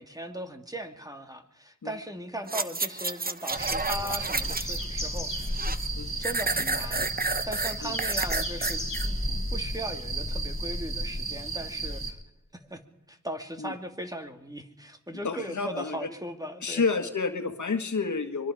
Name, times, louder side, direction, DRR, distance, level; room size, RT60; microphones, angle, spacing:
voice 1, 0.0-5.6 6.2-12.2 12.5-12.8 13.1-16.8, right 1 dB, 10° right, 5 dB, 2.6 m, -38 dB
sound 1, 2.5-4.8 5.2-5.9 6.2-9.1 9.5-9.6, right 3 dB, 30° right, 1.1 m, -30 dB
sound 2, 3.5-12.1, right 1 dB, 25° left, 5.2 m, -33 dB
voice 2, 15.2-16.1 16.6-18.5, left 4 dB, 85° left, 7 dB, 1.8 m, -29 dB
24.5 x 23.5 x 5.1 m, 0.89 s
cardioid pair, 45°, 29 cm